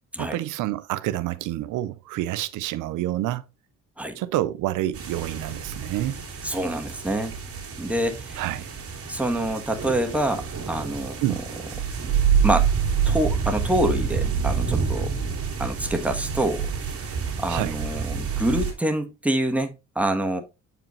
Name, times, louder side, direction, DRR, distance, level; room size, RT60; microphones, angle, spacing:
voice 1, 0.2-3.4 4.2-6.2 8.4-8.7 11.2-11.4 17.5-17.7, right 14 dB, 90° right, 0.6 m, -28 dB
sound 1, 4.9-18.7, right 7 dB, 50° right, 2.4 m, -27 dB
voice 2, 6.4-7.3 7.8-8.4 9.1-11.2 12.4-12.7 13.0-15.1 15.6-16.6 17.1-20.4, right 1 dB, 5° right, 1.3 m, -26 dB
7.7 x 5.0 x 3.1 m
cardioid pair, 90°, 30 cm